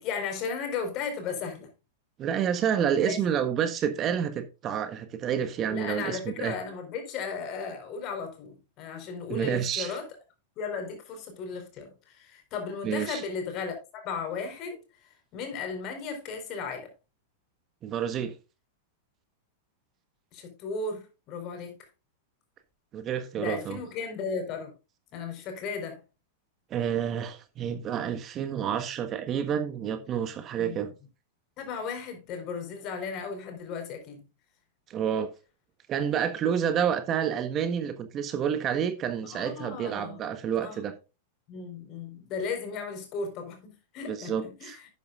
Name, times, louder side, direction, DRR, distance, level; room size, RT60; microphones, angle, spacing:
voice 1, 0.0-1.7 3.0-3.2 5.7-10.1 10.6-14.8 15.3-16.9 20.3-21.8 23.3-24.7 25.1-26.0 30.6-30.8 31.6-34.2 39.2-40.2 40.6-40.8 41.5-44.9, left 5 dB, 40° left, 4.4 m, -35 dB
voice 2, 2.2-6.5 9.3-10.0 12.8-13.2 17.8-18.3 22.9-23.8 26.7-30.9 34.9-35.3 35.9-40.9 44.1-44.8, right 8 dB, 35° right, 1.4 m, -29 dB
11.5 x 9.3 x 2.5 m
hypercardioid pair, 100°, 0 cm